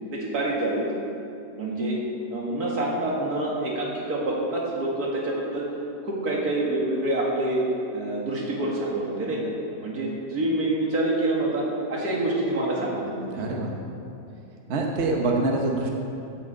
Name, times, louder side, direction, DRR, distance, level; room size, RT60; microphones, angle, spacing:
voice 1, 0.1-0.9 1.6-2.0 2.3-5.7 6.0-7.6 7.9-9.5 9.8-13.7, right 1 dB, 75° right, -3 dB, 2.3 m, -27 dB
voice 2, 13.3-13.7 14.7-15.9, right 2 dB, 50° right, 1 dB, 1.1 m, -25 dB
8.8 x 6.3 x 7.7 m, 2.7 s
omnidirectional pair, 1.6 m